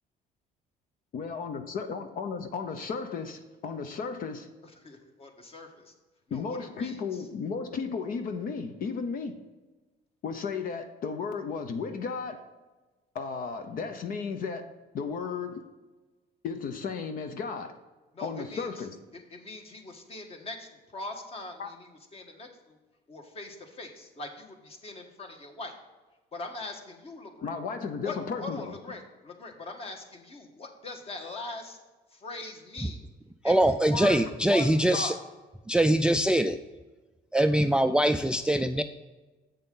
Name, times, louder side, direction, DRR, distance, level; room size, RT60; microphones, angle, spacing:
voice 1, 1.1-4.5 6.3-9.4 10.2-12.4 13.1-14.7 14.9-15.6 16.4-17.7 18.2-19.0 21.6-21.7 27.4-28.8, left 5 dB, 55° left, 7 dB, 0.8 m, -34 dB
voice 2, 4.8-5.9 6.3-7.0 18.1-18.7 19.1-22.8 23.1-25.7 26.3-27.6 28.0-28.1 28.4-31.8 32.1-33.0 33.4-34.2 34.4-35.2, left 3 dB, 35° left, 4 dB, 1.5 m, -41 dB
voice 3, 33.4-35.1 35.7-36.6 37.3-38.8, right 1 dB, 5° right, 9 dB, 0.3 m, -23 dB
7.8 x 6.7 x 3.9 m, 1.2 s
cardioid pair, 110°, 17 cm